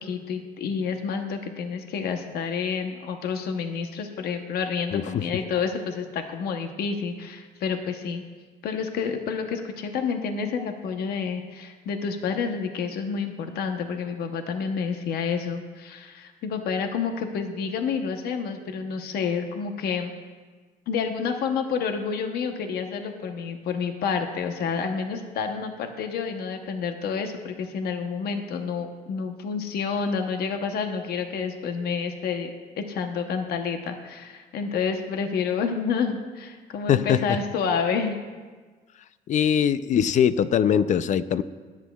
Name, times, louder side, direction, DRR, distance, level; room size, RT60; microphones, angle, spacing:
voice 1, 0.0-8.2 8.6-20.1 20.9-32.5 32.8-38.2, left 6 dB, 70° left, 5 dB, 0.9 m, -29 dB
voice 2, 4.9-5.2 36.9-37.2 39.3-41.4, left 8 dB, 45° left, 14 dB, 0.4 m, -21 dB
21.0 x 8.3 x 2.3 m, 1.4 s
cardioid pair, 110°, 17 cm